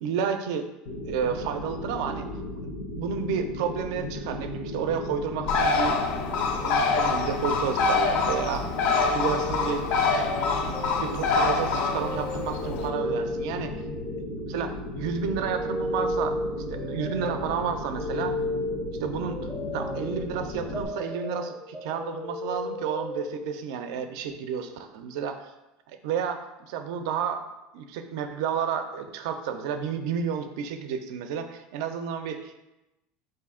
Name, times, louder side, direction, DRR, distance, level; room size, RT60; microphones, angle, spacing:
voice 1, 0.0-0.7 1.0-2.3 2.5-2.6 3.0-6.0 6.6-8.7 9.0-9.8 10.7-13.7 14.5-16.4 16.7-18.3 19.0-19.4 19.7-25.5 25.9-27.4 27.7-32.6, right 7 dB, 75° right, 8 dB, 0.4 m, -31 dB
sound 1, 0.9-20.9, left 1 dB, 85° left, 0.7 m, -36 dB
Bird, 5.5-12.9, left 4 dB, 50° left, 0.4 m, -26 dB
sound 2, 8.7-14.7 15.0-23.6, left 1 dB, 10° right, 0.5 m, -35 dB
4.1 x 2.6 x 3.7 m, 0.96 s
cardioid pair, 165°, 3 cm